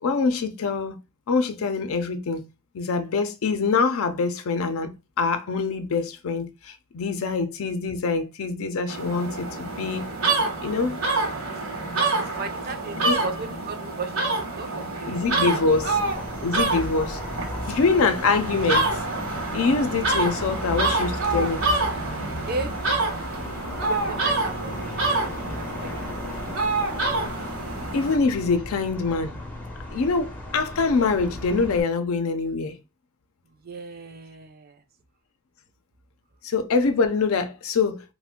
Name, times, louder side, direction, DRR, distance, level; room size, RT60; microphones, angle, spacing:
voice 1, 0.0-1.0 1.3-2.4 2.7-4.9 5.2-10.1 10.6-11.0 13.0-13.2 15.1-16.0 16.4-17.2 17.7-18.9 19.5-21.6 27.9-29.3 29.9-32.7 36.4-38.0, left 4 dB, 75° left, 0.4 m, -24 dB
sound 1, 8.9-28.2, right 3 dB, 75° right, 1.0 m, -27 dB
voice 2, 12.4-14.2 14.6-15.5 22.5-22.7 23.9-25.2 25.5-26.5 33.6-34.8, right 4 dB, 45° right, 0.4 m, -35 dB
sound 2, 15.7-31.8, left 1 dB, 10° left, 0.5 m, -37 dB
2.4 x 2.1 x 3.5 m
head